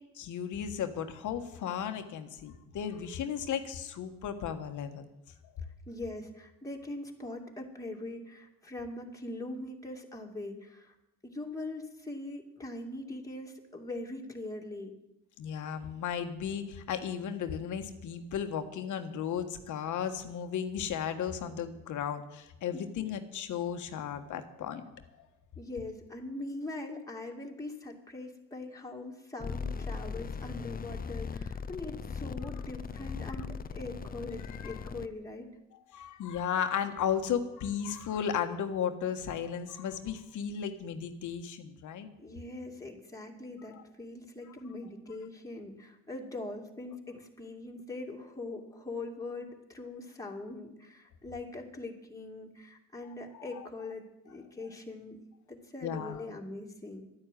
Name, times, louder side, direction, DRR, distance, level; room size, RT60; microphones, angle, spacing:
voice 1, 0.1-5.1 5.4-5.5 15.4-24.8 25.2-25.3 34.4-34.7 35.9-42.1 43.7-43.8 53.3-53.6 55.8-56.3, left 8 dB, 80° left, 7 dB, 1.4 m, -35 dB
voice 2, 5.9-10.9 11.2-14.9 25.6-35.5 42.2-55.2 55.5-57.0, left 2 dB, 10° left, 0 dB, 2.4 m, -42 dB
sound 1, 29.4-35.1, left 5 dB, 30° left, 0.7 m, -39 dB
12.0 x 10.0 x 9.2 m, 0.91 s
cardioid pair, 90°, 30 cm